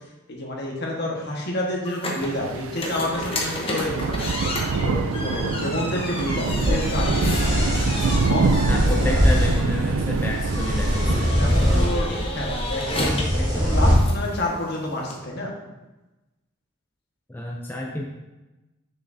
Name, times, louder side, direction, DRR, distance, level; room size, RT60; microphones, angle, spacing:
voice 1, 0.3-4.3 4.8-7.7 8.0-8.8 11.3-15.5, left 1 dB, 55° left, -2 dB, 1.4 m, -29 dB
sound 1, 1.8-15.2, left 1 dB, 25° left, 0.9 m, -32 dB
sound 2, 2.2-11.3, right 4 dB, 90° right, 0.4 m, -26 dB
sound 3, 6.5-13.9, equal, 20° right, 1.5 m, -23 dB
voice 2, 8.7-11.3 17.3-18.0, left 1 dB, 10° left, -2 dB, 0.5 m, -30 dB
6.5 x 6.3 x 2.7 m, 1.1 s
head